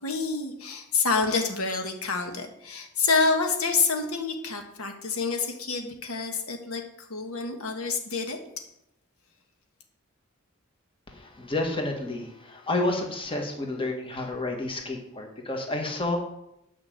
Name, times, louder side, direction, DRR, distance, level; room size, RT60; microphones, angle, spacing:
voice 1, 0.0-8.4, left 4 dB, 90° left, 4 dB, 1.4 m, -27 dB
voice 2, 11.1-16.2, left 2 dB, 25° left, 2 dB, 1.6 m, -30 dB
9.4 x 5.2 x 7.7 m, 0.82 s
head